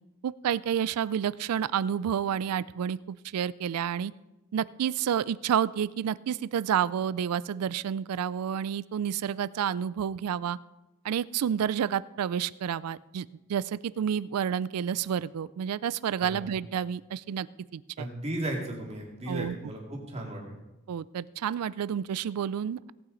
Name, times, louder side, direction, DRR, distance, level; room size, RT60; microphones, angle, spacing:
voice 1, 0.2-4.1 4.5-10.6 11.0-17.5 17.7-18.1 19.3-19.6 20.9-22.9, right 8 dB, 85° right, 19 dB, 0.3 m, -30 dB
voice 2, 18.0-20.6, right 1 dB, 30° right, -1 dB, 2.2 m, -35 dB
17.5 x 8.8 x 3.9 m, 1.0 s
head